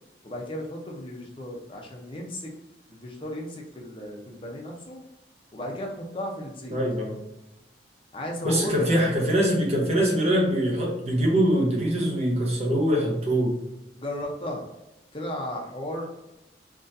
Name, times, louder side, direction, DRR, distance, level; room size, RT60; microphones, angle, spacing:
voice 1, 0.2-2.5 2.9-5.0 5.5-6.8 8.1-9.0 13.9-14.7 15.1-16.0, left 1 dB, 30° left, 0 dB, 0.8 m, -35 dB
voice 2, 6.7-7.2 8.4-13.6, equal, 35° right, -2 dB, 1.0 m, -23 dB
3.9 x 3.1 x 2.7 m, 0.95 s
head